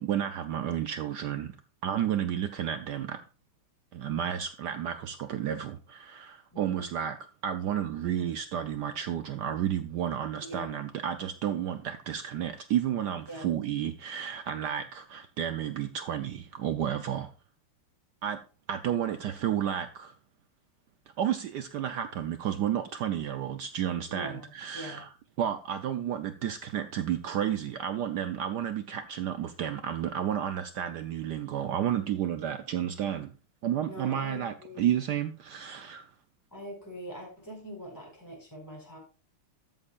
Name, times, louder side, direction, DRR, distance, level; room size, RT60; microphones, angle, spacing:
voice 1, 0.0-1.5 1.8-3.2 3.9-7.2 7.4-17.3 18.2-18.4 18.7-20.1 21.2-25.1 25.4-33.3 33.6-36.1, right 10 dB, 75° right, 1.0 m, -31 dB
voice 2, 6.5-6.9 10.4-10.8 13.3-13.6 24.1-25.0 33.8-35.0 36.5-39.0, equal, 10° left, 4.9 m, -43 dB
13.0 x 7.5 x 2.4 m
omnidirectional pair, 2.4 m